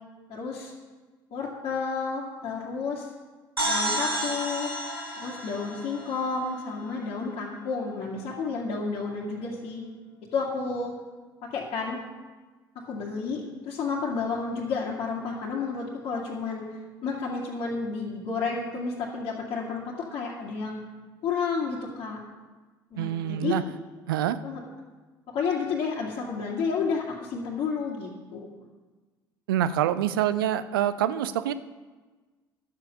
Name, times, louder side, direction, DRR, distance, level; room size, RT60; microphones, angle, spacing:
voice 1, 0.3-0.7 1.3-3.1 3.6-4.7 5.2-9.8 10.3-10.9 11.4-12.0 12.8-16.6 17.0-20.8 21.2-22.2 22.9-23.6 24.4-24.6 25.3-28.5, left 5 dB, 50° left, -6 dB, 2.2 m, -31 dB
sound 1, 3.6-7.2, right 1 dB, 90° right, 1.5 m, -31 dB
voice 2, 23.0-23.6 24.1-24.4 29.5-31.5, right 11 dB, 70° right, 14 dB, 0.6 m, -26 dB
12.0 x 7.9 x 6.6 m, 1.3 s
figure-of-eight pair, 60°, 12 cm